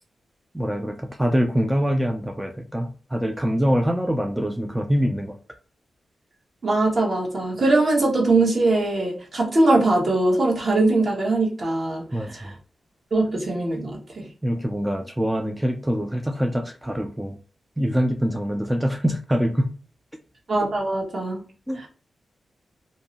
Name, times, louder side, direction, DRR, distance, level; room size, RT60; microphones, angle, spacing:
voice 1, 0.5-5.4 12.1-12.5 14.4-17.4 17.8-19.7 21.7-21.8, equal, 10° right, 4 dB, 0.3 m, -24 dB
voice 2, 6.6-12.5 13.1-14.3 20.5-21.4 21.7-21.9, right 2 dB, 55° right, -2 dB, 1.1 m, -21 dB
2.5 x 2.1 x 2.7 m, 0.38 s
cardioid pair, 70°, 0 cm